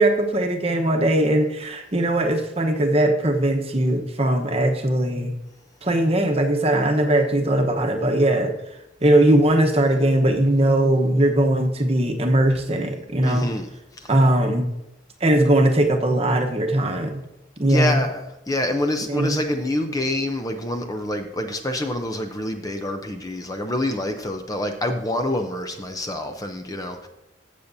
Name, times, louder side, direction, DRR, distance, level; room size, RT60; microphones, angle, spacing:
voice 1, 0.0-5.3 5.8-8.5 9.0-13.5 14.1-14.7 15.2-17.2 17.6-18.0 19.1-19.4, right 1 dB, 35° right, 3 dB, 1.0 m, -20 dB
voice 2, 13.2-13.7 14.0-14.1 17.6-27.1, left 1 dB, 20° left, 6 dB, 0.6 m, -26 dB
15.0 x 6.7 x 2.7 m, 0.93 s
head